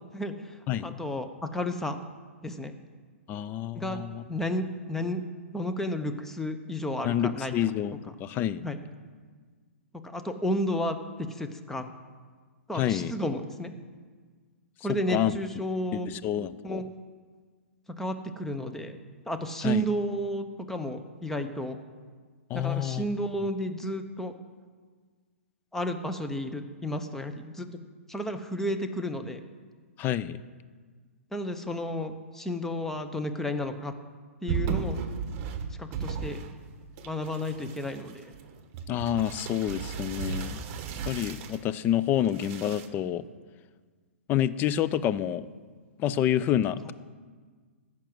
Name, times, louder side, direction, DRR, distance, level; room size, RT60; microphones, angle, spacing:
voice 1, 0.1-0.6 0.8-2.0 2.4-2.7 3.7-5.2 5.5-7.7 8.6-8.8 10.0-11.8 12.7-13.7 14.8-16.1 16.6-16.8 18.0-19.0 19.3-21.8 22.5-24.3 25.7-27.7 28.1-29.4 31.3-33.9 34.4-35.0 35.8-36.4 37.0-38.3, equal, 5° left, 7 dB, 0.8 m, -32 dB
voice 2, 3.3-4.2 7.0-8.6 12.7-13.1 14.9-15.4 15.9-16.8 19.6-19.9 22.5-23.1 30.0-30.4 38.9-40.6 41.1-43.2 44.3-45.5 46.0-46.9, left 11 dB, 25° left, 14 dB, 0.5 m, -28 dB
sound 1, 34.5-36.7 37.0-41.6 42.2-42.9, right 6 dB, 35° right, 1.1 m, -35 dB
15.0 x 6.1 x 7.8 m, 1.5 s
figure-of-eight pair, 120°, 8 cm